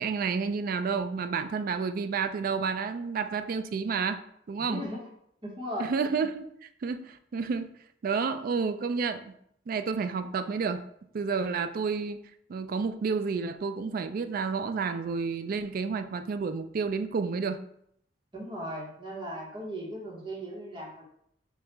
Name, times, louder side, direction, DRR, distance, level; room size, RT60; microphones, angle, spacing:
voice 1, 0.0-4.2 4.5-4.8 5.8-6.5 6.8-7.8 8.0-9.3 9.7-10.8 11.1-12.2 12.5-17.6, right 5 dB, 50° right, 10 dB, 0.3 m, -30 dB
voice 2, 4.6-5.1 5.4-5.9 18.3-21.1, equal, 25° right, -4 dB, 1.0 m, -37 dB
6.5 x 2.3 x 3.0 m, 0.70 s
head